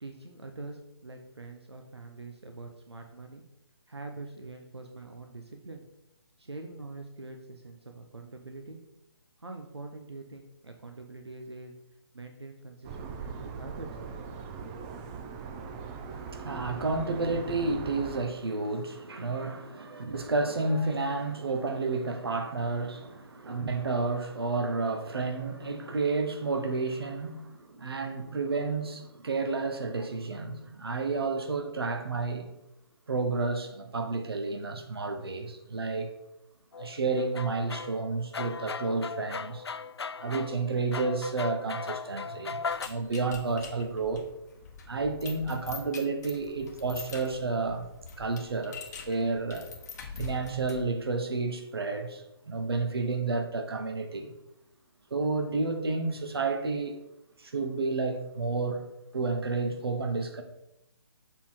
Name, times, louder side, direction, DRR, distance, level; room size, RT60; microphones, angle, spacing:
voice 1, 0.0-3.4 3.9-5.8 6.4-8.8 9.4-11.7 12.1-14.5, right 3 dB, 90° right, 0.9 m, -44 dB
sound 1, 12.8-18.3, right 5 dB, 15° right, 0.4 m, -40 dB
voice 2, 16.1-32.5 33.1-36.1 36.8-39.6 40.1-42.6 42.8-44.2 44.9-47.9 48.2-48.8 49.1-49.7 50.2-54.3 55.1-57.0 57.4-58.8 59.1-60.4, right 3 dB, 70° right, 1.1 m, -31 dB
sound 2, 36.7-42.9, left 5 dB, 80° left, 0.4 m, -38 dB
sound 3, 42.7-51.0, left 5 dB, 40° left, 1.0 m, -44 dB
7.1 x 3.9 x 4.4 m
figure-of-eight pair, 140°, 13 cm